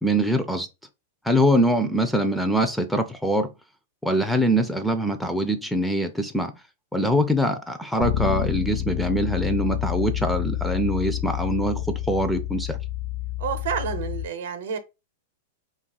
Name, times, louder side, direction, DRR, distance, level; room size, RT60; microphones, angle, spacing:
voice 1, 0.0-0.7 1.3-3.5 4.0-6.5 6.9-12.8, equal, ahead, 0.3 m, -23 dB
Bass guitar, 8.0-14.3, left 12 dB, 50° left, 0.8 m, -28 dB
voice 2, 13.4-14.8, right 7 dB, 70° right, 0.6 m, -29 dB
2.3 x 2.2 x 4.0 m
hypercardioid pair, 130°, 0 cm